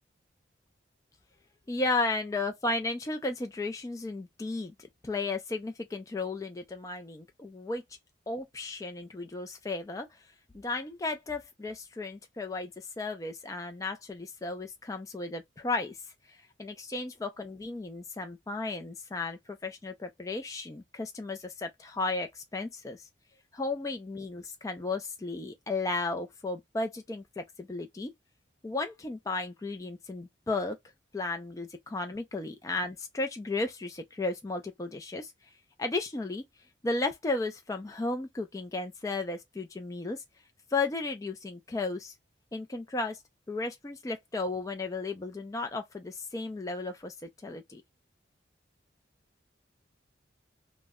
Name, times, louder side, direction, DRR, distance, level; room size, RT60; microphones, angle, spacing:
voice 1, 1.7-4.7 5.0-7.8 8.3-10.2 10.5-16.0 16.6-23.1 23.5-28.1 28.6-30.8 31.1-35.3 35.8-36.4 36.8-40.2 40.7-42.1 42.5-43.2 43.5-47.8, left 3 dB, 15° left, 0.3 m, -34 dB
2.1 x 2.0 x 3.4 m
head